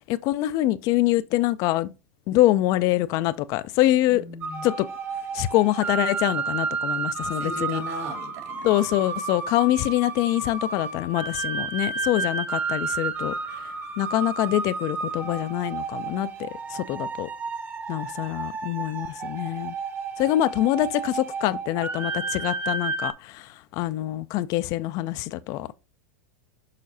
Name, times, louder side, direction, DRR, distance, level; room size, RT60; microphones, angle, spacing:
voice 1, 0.1-1.9 2.3-4.2 4.6-4.9 5.3-7.8 8.6-13.3 14.0-17.3 17.9-19.7 20.2-25.7, left 15 dB, 50° left, 0.4 m, -25 dB
voice 2, 4.1-4.7 7.2-8.7, equal, 60° right, 2.8 m, -38 dB
sound 1, 4.4-23.1, right 4 dB, 25° right, 1.0 m, -31 dB
6.6 x 5.6 x 2.7 m
hypercardioid pair, 110°, 8 cm